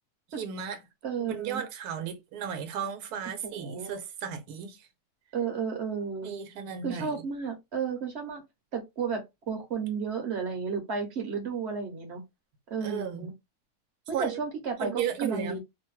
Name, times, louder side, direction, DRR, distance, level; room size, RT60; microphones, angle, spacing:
voice 1, 0.4-0.8 1.2-4.9 6.2-7.2 12.8-13.3 14.1-14.4 14.8-15.6, right 8 dB, 85° right, 1.2 m, -34 dB
voice 2, 1.0-1.6 3.4-4.0 5.3-6.3 6.8-8.4 8.7-9.2 9.5-12.2 12.7-13.3 14.1-15.6, right 6 dB, 55° right, 0.9 m, -32 dB
2.8 x 2.2 x 3.0 m
omnidirectional pair, 1.6 m